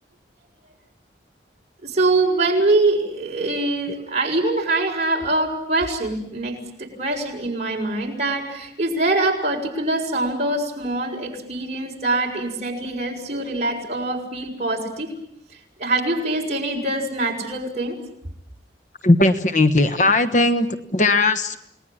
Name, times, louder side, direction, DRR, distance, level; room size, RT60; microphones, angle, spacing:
voice 1, 1.8-15.1 15.8-18.0, right 2 dB, 40° right, -1 dB, 6.4 m, -23 dB
voice 2, 19.0-21.6, left 2 dB, 45° left, 8 dB, 1.2 m, -18 dB
29.0 x 19.5 x 8.8 m, 0.76 s
head